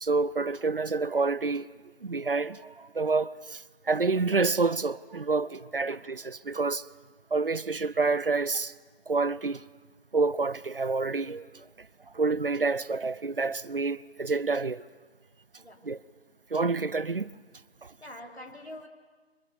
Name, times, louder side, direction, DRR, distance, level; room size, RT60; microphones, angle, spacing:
voice 1, 0.0-1.7 2.0-6.8 7.3-8.7 9.1-9.6 10.1-11.6 12.1-14.8 15.8-16.0 16.5-17.3, right 3 dB, 60° right, 0.7 m, -28 dB
voice 2, 18.0-18.9, left 1 dB, 80° left, 3.4 m, -45 dB
24.5 x 23.5 x 7.1 m
figure-of-eight pair, 165°, 32 cm